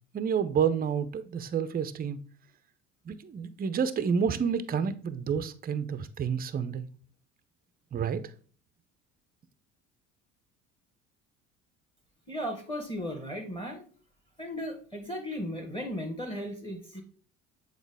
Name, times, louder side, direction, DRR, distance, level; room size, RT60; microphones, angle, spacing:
voice 1, 0.1-2.2 3.1-6.9 7.9-8.2, right 7 dB, 25° right, 0.5 m, -29 dB
voice 2, 12.3-13.8 14.4-17.0, equal, 15° left, 1.4 m, -36 dB
7.2 x 3.9 x 3.4 m
hypercardioid pair, 65°, 37 cm